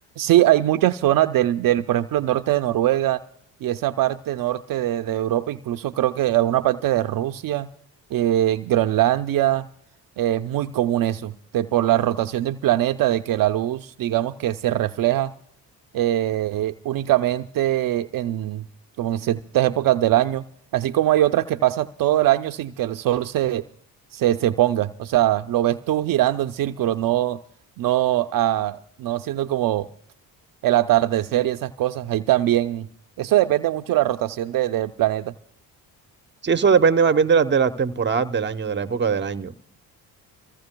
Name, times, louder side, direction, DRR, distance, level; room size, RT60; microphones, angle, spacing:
voice 1, 0.2-3.2 3.6-7.7 8.1-9.7 10.2-15.3 15.9-18.6 19.0-20.4 20.7-23.6 24.1-27.4 27.8-29.9 30.6-32.9 33.2-35.3, right 13 dB, 60° right, 0.5 m, -22 dB
voice 2, 36.4-39.5, right 6 dB, 30° right, 0.8 m, -20 dB
26.0 x 15.5 x 2.2 m
supercardioid pair, 65°, 38 cm